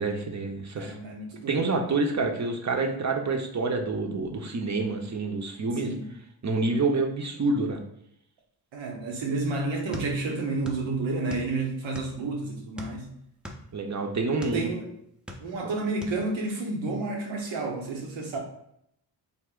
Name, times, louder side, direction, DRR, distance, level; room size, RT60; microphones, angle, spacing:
voice 1, 0.0-1.0 1.5-5.9 6.4-7.8 13.7-14.7, right 3 dB, 40° right, 3 dB, 0.7 m, -27 dB
voice 2, 0.8-1.6 5.8-6.1 8.7-13.1 14.5-14.9 15.4-18.4, right 3 dB, 85° right, 1 dB, 0.9 m, -30 dB
sound 1, 9.9-10.9 11.1-12.3 12.7-14.6 15.1-15.7 16.0-16.2, equal, ahead, 0.6 m, -40 dB
3.2 x 2.1 x 3.7 m, 0.73 s
cardioid pair, 50°, 45 cm